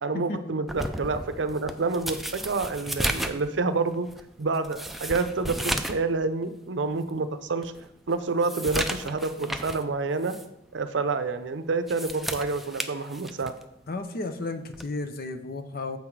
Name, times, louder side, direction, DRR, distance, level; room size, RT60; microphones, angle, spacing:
voice 1, 0.0-4.1 4.4-7.7 8.1-10.3 10.7-13.5, right 3 dB, 70° right, 10 dB, 0.6 m, -28 dB
sound 1, 0.7-6.1 6.4-6.5 7.1-7.2 7.6-9.9 10.2-10.5 11.7-13.6 14.7-15.0, right 1 dB, ahead, 0.4 m, -34 dB
voice 2, 13.9-16.0, left 2 dB, 55° left, 8 dB, 0.7 m, -33 dB
7.2 x 5.8 x 4.6 m, 0.83 s
head